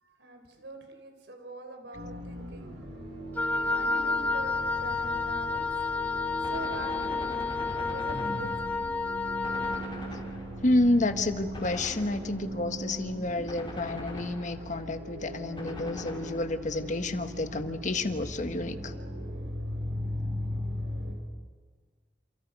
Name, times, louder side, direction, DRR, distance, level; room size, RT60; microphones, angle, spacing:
voice 1, 0.0-2.7 3.7-5.9 6.4-8.8, right 2 dB, 70° right, 5 dB, 4.7 m, -44 dB
sound 1, 1.9-21.1, equal, 85° right, 5.8 m, -39 dB
Wind instrument woodwind instrument, 3.4-9.9, left 4 dB, 10° left, 1.7 m, -30 dB
Gunshot gunfire, 6.4-8.9 9.4-10.8 11.5-12.6 13.5-14.9 15.6-16.8, left 1 dB, 30° left, 4.1 m, -43 dB
voice 2, 10.6-18.9, left 2 dB, 45° left, 8 dB, 1.4 m, -29 dB
29.0 x 28.5 x 5.4 m, 1.5 s
head